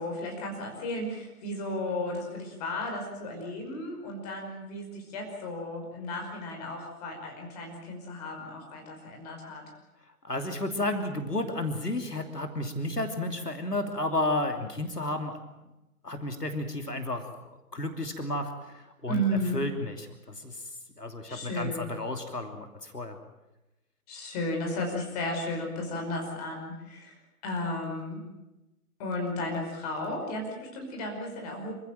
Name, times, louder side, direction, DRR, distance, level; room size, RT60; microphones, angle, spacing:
voice 1, 0.0-9.6 19.1-19.6 21.3-21.9 24.1-27.2 27.4-28.2 29.0-31.7, left 1 dB, 25° left, 2 dB, 5.4 m, -34 dB
voice 2, 10.2-15.4 16.0-17.2 17.7-19.2 19.5-20.6 21.0-23.2, left 2 dB, 90° left, 6 dB, 3.0 m, -32 dB
27.0 x 15.5 x 9.0 m, 0.99 s
figure-of-eight pair, 145°, 46 cm